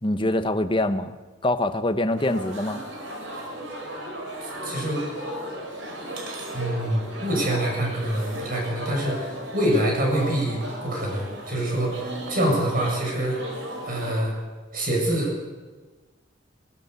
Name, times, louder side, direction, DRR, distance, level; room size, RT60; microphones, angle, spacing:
voice 1, 0.0-1.1 1.4-2.8, left 1 dB, 25° left, 9 dB, 0.9 m, -24 dB
sound 1, 2.2-14.1, equal, 70° right, 4.9 m, -36 dB
voice 2, 4.4-5.0 6.5-13.4 13.8-14.4 14.7-15.5, right 1 dB, 45° right, -1 dB, 7.8 m, -26 dB
21.0 x 18.0 x 6.9 m, 1.3 s
head